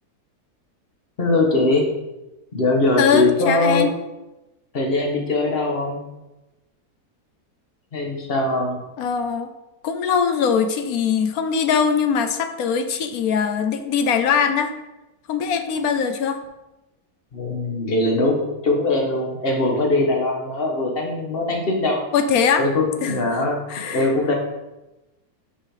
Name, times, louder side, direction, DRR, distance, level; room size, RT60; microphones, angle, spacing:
voice 1, 1.2-1.9 2.5-3.8 4.7-6.0 7.9-8.8 17.3-22.0 22.6-24.3, left 2 dB, 40° left, 1 dB, 1.5 m, -21 dB
voice 2, 3.0-3.9 9.0-9.5 9.8-14.7 15.3-16.4 22.1-22.6 23.0-23.2 23.7-24.0, left 6 dB, 75° left, 8 dB, 1.1 m, -21 dB
5.9 x 5.8 x 4.9 m, 1.0 s
omnidirectional pair, 1.6 m